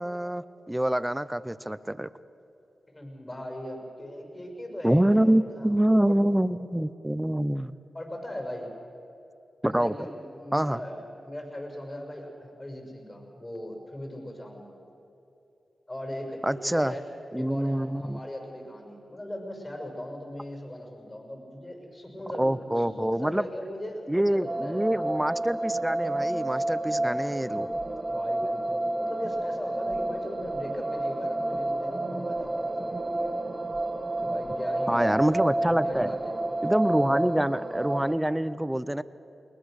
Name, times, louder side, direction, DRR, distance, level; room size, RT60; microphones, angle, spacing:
voice 1, 0.0-2.1 4.8-7.7 9.6-9.9 10.5-10.8 16.4-16.9 17.3-18.2 22.4-23.4 24.1-27.7 34.9-36.1 36.6-39.0, right 1 dB, 10° right, 15 dB, 0.7 m, -26 dB
voice 2, 2.9-5.7 6.0-6.2 7.9-8.7 9.6-14.7 15.9-17.0 17.3-24.9 28.0-33.3 34.2-35.3 35.6-36.5 36.9-37.0, left 1 dB, 30° left, 1 dB, 6.0 m, -39 dB
sound 1, 24.4-38.2, right 1 dB, 30° right, 1.3 m, -30 dB
21.5 x 19.5 x 6.5 m, 2.8 s
cardioid pair, 50°, 0 cm